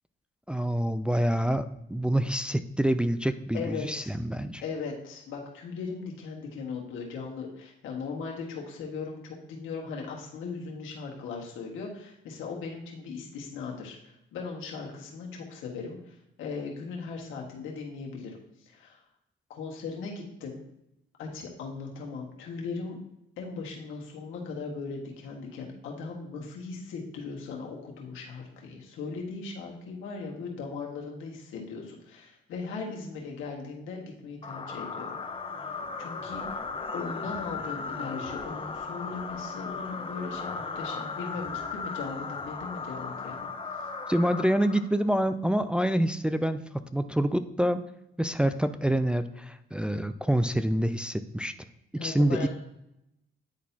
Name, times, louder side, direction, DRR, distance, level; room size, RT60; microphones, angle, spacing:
voice 1, 0.5-4.6 44.1-47.8 48.2-51.5 51.9-52.5, right 1 dB, 5° right, 9 dB, 0.3 m, -27 dB
voice 2, 3.5-4.1 4.6-19.0 19.5-20.6 21.2-23.0 23.4-35.1 35.7-36.6 36.9-43.5 52.0-52.5, left 4 dB, 85° left, -1 dB, 1.5 m, -38 dB
sound 1, 34.4-45.2, left 4 dB, 25° left, 0.8 m, -36 dB
9.5 x 4.1 x 2.7 m, 0.82 s
cardioid pair, 90°, 20 cm